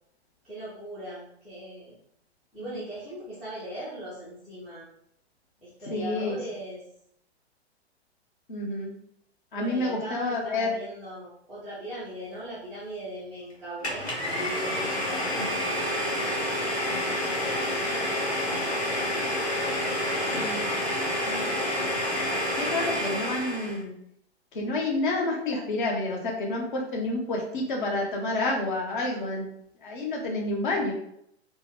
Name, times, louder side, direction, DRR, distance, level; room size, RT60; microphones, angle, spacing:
voice 1, 0.4-1.9 2.5-4.9 5.6-6.8 9.5-14.1 14.6-15.5 17.8-19.2, right 1 dB, ahead, -13 dB, 0.4 m, -39 dB
voice 2, 5.9-6.4 8.5-8.9 9.5-10.7 15.3-15.5 16.9-17.1 20.3-20.6 21.3-21.5 22.5-24.0 24.5-29.5 29.8-30.9, left 2 dB, 50° left, 0 dB, 1.0 m, -29 dB
Domestic sounds home sounds, 13.8-23.8, left 1 dB, 75° left, 1.3 m, -28 dB
3.4 x 2.1 x 3.4 m, 0.71 s
figure-of-eight pair, 110°, 33 cm